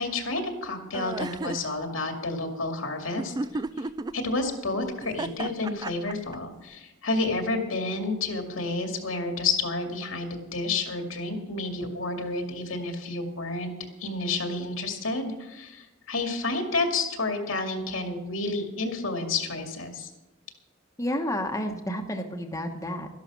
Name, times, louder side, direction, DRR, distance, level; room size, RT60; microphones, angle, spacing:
voice 1, 0.0-3.4 3.8-3.9 4.1-13.7 14.0-20.1, left 3 dB, 80° left, 4 dB, 2.3 m, -30 dB
sound 1, 0.9-1.6 3.2-4.1 5.0-6.3, right 2 dB, 20° right, 0.3 m, -32 dB
voice 2, 21.0-23.1, left 1 dB, 15° left, 3 dB, 1.1 m, -30 dB
13.0 x 11.5 x 6.2 m, 1.0 s
head